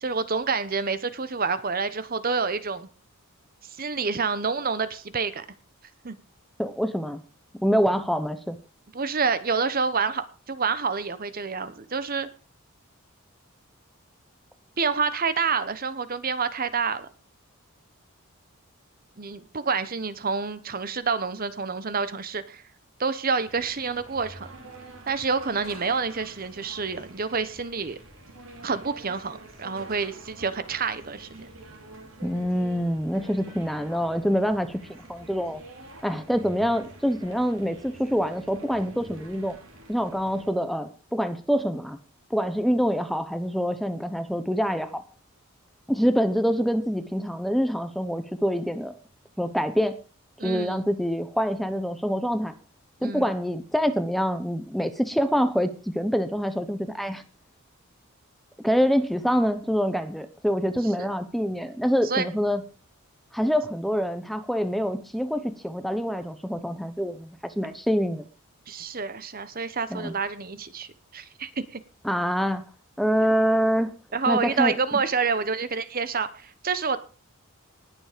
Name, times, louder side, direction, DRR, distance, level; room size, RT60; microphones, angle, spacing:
voice 1, 0.0-2.9 3.8-5.4 6.0-6.2 8.9-12.3 14.8-17.1 19.2-22.6 23.0-24.5 25.1-28.0 28.6-31.5 50.4-50.8 53.0-53.3 61.0-61.1 62.0-62.3 68.7-71.8 74.1-77.0, right 5 dB, 40° right, 13 dB, 1.0 m, -28 dB
voice 2, 6.6-7.2 7.6-8.6 32.2-35.6 36.0-39.6 39.9-42.0 42.3-45.0 45.9-48.9 49.4-50.0 50.4-52.5 53.0-57.2 58.6-62.6 63.3-68.2 69.9-70.1 72.0-72.6 73.0-73.9 74.3-74.7, equal, ahead, 10 dB, 0.8 m, -25 dB
sound 1, 23.4-40.5, right 2 dB, 60° right, 3.5 m, -46 dB
19.5 x 7.0 x 5.1 m, 0.36 s
head